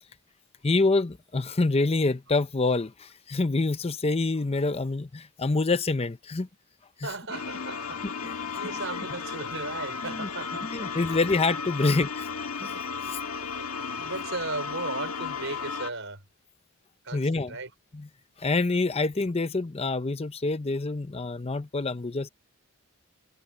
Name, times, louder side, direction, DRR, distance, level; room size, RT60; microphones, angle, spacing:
voice 1, 0.6-6.5 7.0-7.1 8.2-8.3 10.2-10.3 10.7-12.3 12.6-12.8 13.1-13.2 17.1-17.5 17.9-18.1 18.4-22.3, left 3 dB, 30° left, 0.6 m, -26 dB
voice 2, 7.0-10.9 11.8-11.9 12.6-12.7 13.4-13.7 14.0-16.2 17.0-17.7, right 3 dB, 65° right, 5.1 m, -37 dB
sound 1, 7.3-15.9, left 5 dB, 85° left, 1.6 m, -34 dB
head